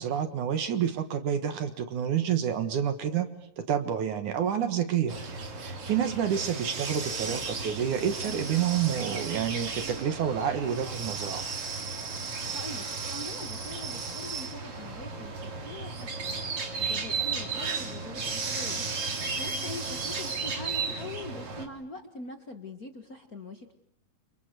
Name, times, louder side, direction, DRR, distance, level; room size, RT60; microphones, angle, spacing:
voice 1, 0.0-3.3 3.6-5.2 5.6-11.4, right 8 dB, 60° right, 9 dB, 2.5 m, -29 dB
sound 1, 5.1-21.7, right 4 dB, 35° right, 3.2 m, -34 dB
voice 2, 12.5-16.4 16.8-18.8 19.3-23.7, left 2 dB, 65° left, 6 dB, 0.8 m, -43 dB
30.0 x 27.0 x 6.8 m, 0.66 s
omnidirectional pair, 4.6 m